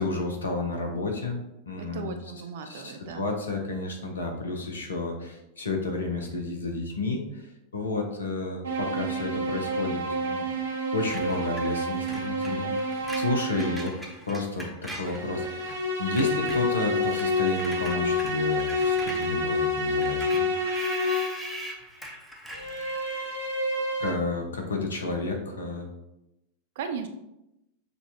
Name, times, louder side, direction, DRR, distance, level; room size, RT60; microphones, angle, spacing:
voice 1, 0.0-2.1 2.7-10.6 10.9-13.9 14.3-15.5 16.0-20.5 24.0-25.9, left 2 dB, 70° left, 2 dB, 0.7 m, -31 dB
voice 2, 1.8-3.3 26.8-27.1, right 6 dB, 55° right, 8 dB, 0.4 m, -36 dB
sound 1, 8.6-14.0 15.0-21.5 22.5-24.1, left 1 dB, 75° right, 0.9 m, -28 dB
Screech, 11.1-15.8 16.1-23.5, equal, 5° left, 0.8 m, -42 dB
6.6 x 2.3 x 2.8 m, 0.87 s
figure-of-eight pair, 90°, 0 cm